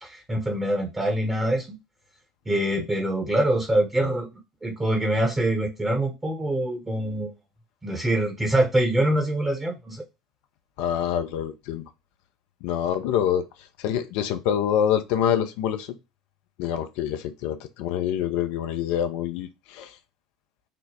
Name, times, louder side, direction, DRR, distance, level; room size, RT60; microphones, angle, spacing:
voice 1, 0.0-1.8 2.5-4.3 4.6-7.3 7.8-10.0, right 1 dB, 15° right, 0.8 m, -24 dB
voice 2, 10.8-11.9 12.6-13.5 13.8-16.0 16.6-20.0, left 9 dB, 60° left, 0.5 m, -26 dB
3.9 x 2.0 x 3.3 m
figure-of-eight pair, 65°, 2 cm